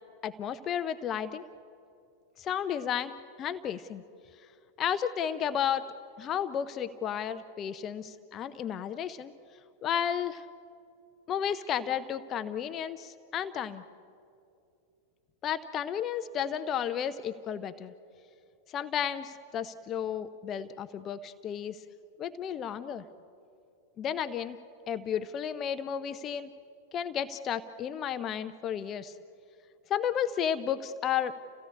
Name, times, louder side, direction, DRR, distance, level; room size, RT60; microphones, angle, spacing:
voice 1, 0.2-1.4 2.4-3.1 3.4-4.0 4.8-9.3 9.8-10.5 11.3-13.8 15.4-17.9 18.7-21.8 22.2-23.0 24.0-24.6 24.9-26.5 26.9-29.1 29.9-31.3, left 9 dB, 30° left, 11 dB, 0.7 m, -32 dB
29.5 x 17.0 x 8.5 m, 2.6 s
figure-of-eight pair, 90°, 0 cm